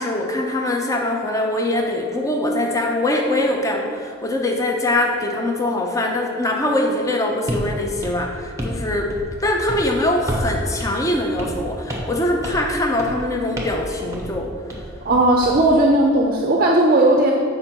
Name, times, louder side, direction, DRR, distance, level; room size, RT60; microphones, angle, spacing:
voice 1, 0.0-9.1 9.4-14.5, left 1 dB, 15° left, 1 dB, 0.5 m, -22 dB
sound 1, 7.5-7.7 8.0-8.8 9.1-9.4 9.7-9.9 10.3-10.5 10.8-10.9 11.4-11.6 11.9-12.2 12.4-12.7 13.0-13.2 13.6-13.8 14.1-14.3 14.7-15.6, equal, 15° right, 1.0 m, -29 dB
voice 2, 15.0-17.3, right 1 dB, 40° right, 0 dB, 0.5 m, -16 dB
7.6 x 5.1 x 4.5 m, 2.1 s
head